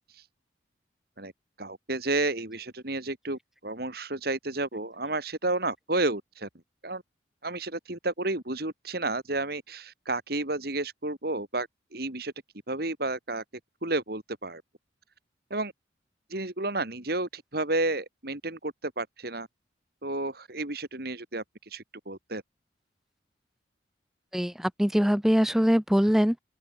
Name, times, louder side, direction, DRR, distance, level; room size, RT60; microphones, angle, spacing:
voice 1, 1.6-6.5 6.8-7.0 7.4-12.3 12.7-13.4 13.8-14.6 15.5-15.7 16.3-19.5 20.0-22.4, right 2 dB, 55° right, 2.9 m, -31 dB
voice 2, 24.8-26.4, equal, ahead, 0.5 m, -22 dB
open air
head